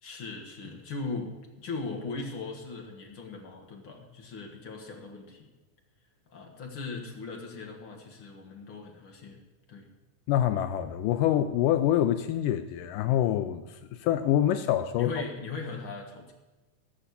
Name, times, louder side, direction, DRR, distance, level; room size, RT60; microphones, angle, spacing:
voice 1, 0.0-5.5 6.3-9.4 9.7-9.9 15.0-16.3, left 3 dB, 45° left, 1 dB, 2.1 m, -39 dB
voice 2, 10.3-15.1, left 11 dB, 80° left, 10 dB, 2.1 m, -26 dB
16.5 x 5.7 x 8.3 m, 1.2 s
omnidirectional pair, 3.9 m